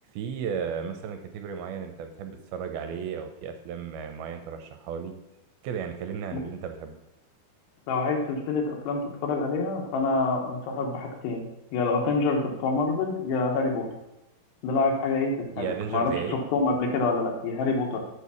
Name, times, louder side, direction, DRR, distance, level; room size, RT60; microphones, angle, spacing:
voice 1, 0.1-5.1 5.6-6.9 15.5-16.4, right 7 dB, 80° right, 6 dB, 2.4 m, -34 dB
voice 2, 7.9-11.4 11.7-13.9 14.6-18.0, left 3 dB, 85° left, 1 dB, 3.5 m, -26 dB
8.3 x 4.7 x 6.9 m, 0.91 s
omnidirectional pair, 4.7 m